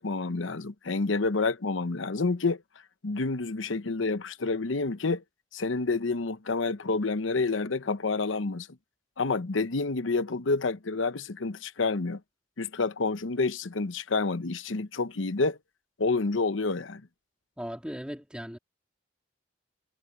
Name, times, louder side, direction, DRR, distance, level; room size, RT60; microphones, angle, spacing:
voice 1, 0.0-2.6 3.0-5.2 5.5-8.7 9.2-12.2 12.6-15.6 16.0-17.0, left 3 dB, 85° left, 0.9 m, -28 dB
voice 2, 17.6-18.6, equal, 5° right, 3.4 m, -37 dB
head